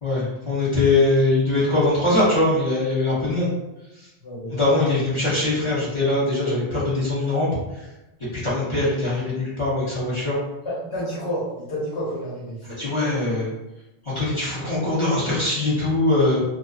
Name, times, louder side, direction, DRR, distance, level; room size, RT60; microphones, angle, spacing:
voice 1, 0.0-3.5 4.0-4.1 4.5-7.8 8.4-10.4 12.6-13.5 14.0-16.4, left 2 dB, 30° left, -9 dB, 0.7 m, -22 dB
voice 2, 4.2-4.8 10.6-12.6, equal, 85° left, -7 dB, 1.5 m, -30 dB
2.4 x 2.3 x 2.3 m, 0.98 s
omnidirectional pair, 1.1 m